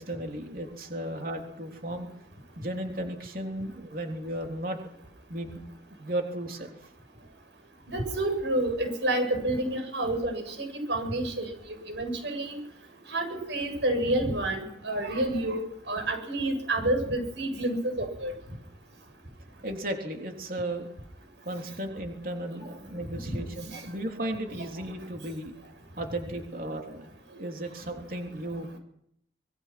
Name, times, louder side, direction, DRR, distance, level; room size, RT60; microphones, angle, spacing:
voice 1, 0.0-2.1 2.6-4.8 5.3-5.6 6.0-6.7 19.6-20.9 21.4-25.5 26.0-28.8, right 1 dB, 50° right, 3 dB, 3.5 m, -35 dB
voice 2, 7.9-11.5 11.9-12.6 13.1-18.3 23.3-23.4 23.7-23.8 24.6-24.7, right 1 dB, 85° right, 6 dB, 7.9 m, -29 dB
26.0 x 22.0 x 6.1 m, 0.72 s
head